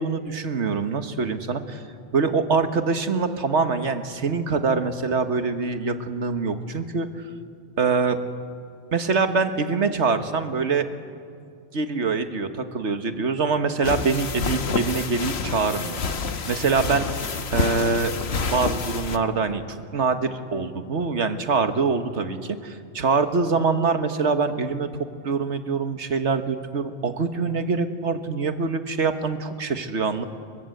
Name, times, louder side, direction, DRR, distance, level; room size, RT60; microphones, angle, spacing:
voice 1, 0.0-1.8 2.1-7.3 7.8-8.2 8.9-10.9 11.7-16.0 16.5-17.2 17.5-18.1 18.4-24.9 25.2-30.2, right 4 dB, 90° right, 8 dB, 1.7 m, -24 dB
sound 1, 13.8-19.2, left 4 dB, 70° left, 1.4 m, -28 dB
29.0 x 23.5 x 7.9 m, 2.3 s
omnidirectional pair, 1.2 m